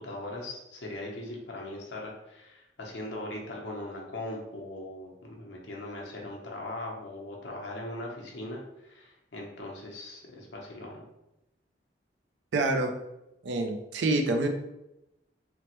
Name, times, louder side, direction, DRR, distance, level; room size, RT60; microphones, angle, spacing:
voice 1, 0.0-11.1, left 1 dB, 80° left, -1 dB, 0.7 m, -40 dB
voice 2, 12.5-12.9 13.4-14.5, right 2 dB, 85° right, 5 dB, 0.4 m, -26 dB
3.2 x 2.0 x 2.9 m, 0.91 s
head